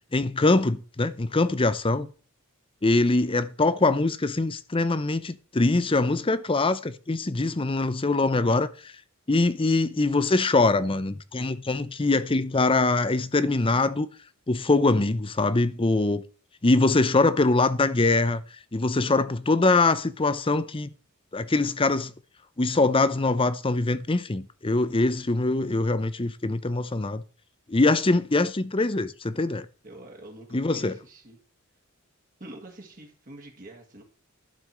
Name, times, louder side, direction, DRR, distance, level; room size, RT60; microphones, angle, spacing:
voice 1, 0.1-2.1 2.8-8.7 9.3-14.1 14.5-16.2 16.6-18.4 18.7-20.9 21.3-22.1 22.6-27.2 27.7-29.7 30.5-31.0, left 2 dB, 25° left, 0.7 m, -23 dB
voice 2, 29.8-31.4 32.4-34.0, right 1 dB, 40° right, 2.1 m, -45 dB
11.5 x 5.0 x 7.5 m
head